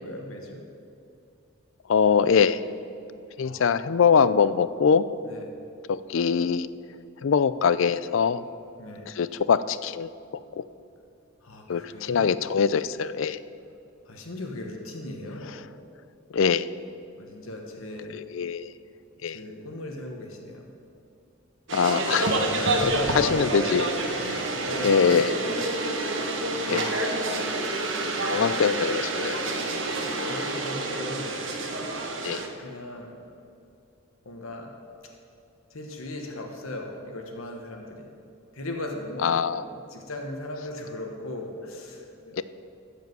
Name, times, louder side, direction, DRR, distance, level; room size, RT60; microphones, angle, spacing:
voice 1, 0.0-0.6 3.4-3.6 4.0-4.1 5.2-5.4 8.8-9.1 11.4-12.3 14.1-15.6 17.2-18.2 19.2-20.7 22.5-25.6 26.6-27.4 30.0-31.4 32.6-33.2 34.2-34.7 35.7-38.0 38.5-39.3 39.5-42.4, left 1 dB, 85° left, 2 dB, 1.4 m, -38 dB
voice 2, 1.9-2.6 3.4-5.1 5.9-6.7 7.2-8.4 9.1-10.1 10.6-10.7 11.7-13.4 16.3-16.7 18.1-18.7 19.2-19.4 21.7-22.4 22.8-23.9 24.3-24.4 24.8-25.3 26.7-26.9 28.2-29.4 32.2-32.4 39.2-39.6 42.4-42.5, left 6 dB, 70° left, 15 dB, 0.4 m, -23 dB
sound 1, 21.7-32.5, right 2 dB, 60° right, 1.3 m, -28 dB
14.5 x 5.1 x 7.9 m, 2.6 s
head